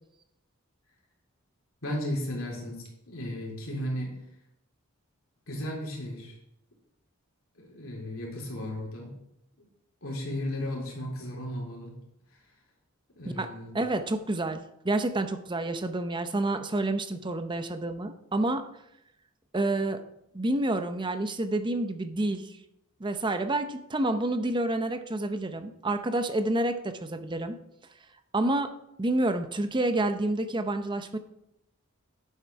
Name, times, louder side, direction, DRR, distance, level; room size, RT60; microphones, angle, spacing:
voice 1, 1.8-4.2 5.5-6.4 7.6-9.1 10.0-12.0 13.2-13.7, left 1 dB, 65° left, -2 dB, 3.6 m, -35 dB
voice 2, 13.7-14.6 14.8-18.7 19.5-20.0 20.3-22.5 23.0-27.6 28.3-28.7 29.0-31.2, right 2 dB, 20° right, 9 dB, 0.6 m, -28 dB
10.0 x 8.2 x 4.6 m, 0.80 s
head